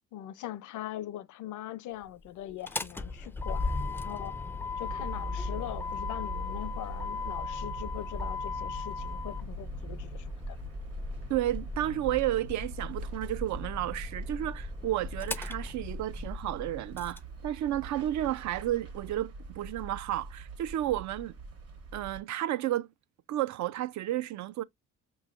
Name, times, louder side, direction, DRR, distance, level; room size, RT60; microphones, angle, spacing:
voice 1, 0.1-4.4 4.8-10.6, left 13 dB, 80° left, 0.6 m, -41 dB
Motor vehicle (road), 2.5-17.2, left 3 dB, 10° left, 0.3 m, -37 dB
sound 1, 4.8-22.2, right 3 dB, 50° right, 1.3 m, -44 dB
voice 2, 11.3-21.3 21.9-22.9 23.3-24.6, right 13 dB, 70° right, 0.5 m, -32 dB
5.3 x 3.0 x 2.4 m
cardioid pair, 90°, 30 cm